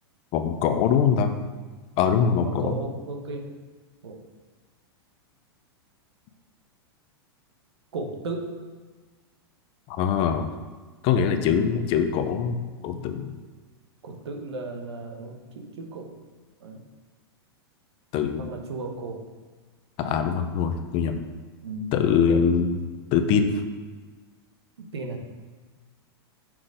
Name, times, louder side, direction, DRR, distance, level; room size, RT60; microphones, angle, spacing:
voice 1, 0.3-1.3 2.0-2.8 9.9-10.5 11.0-13.3 18.1-18.5 20.0-21.2 21.9-22.8 23.1-23.6, left 7 dB, 40° left, 8 dB, 0.6 m, -23 dB
voice 2, 2.4-3.5 4.0-4.2 7.9-8.5 11.3-11.7 14.0-16.1 16.6-16.8 18.4-19.2 20.0-20.3 21.6-22.4 24.8-25.3, right 2 dB, 85° right, 4 dB, 1.1 m, -35 dB
6.0 x 3.9 x 5.0 m, 1.4 s
hypercardioid pair, 115°, 13 cm